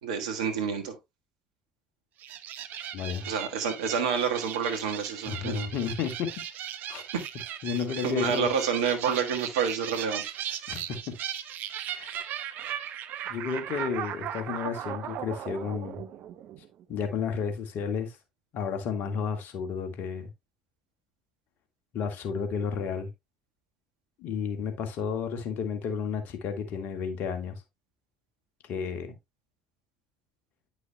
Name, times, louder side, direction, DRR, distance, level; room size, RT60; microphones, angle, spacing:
voice 1, 0.0-1.0 3.2-5.7 7.1-7.2 8.0-10.2, right 6 dB, 75° right, 1.5 m, -28 dB
sound 1, 2.2-16.8, right 10 dB, 55° right, 0.8 m, -37 dB
voice 2, 2.9-3.3 5.2-6.3 6.9-7.0 7.6-8.5 10.7-11.1 11.9-12.2 13.3-16.0 16.9-18.2 18.5-20.3 21.9-23.1 24.2-27.6 28.7-29.1, left 6 dB, 55° left, 1.8 m, -32 dB
10.0 x 6.2 x 2.3 m
hypercardioid pair, 60°, 4 cm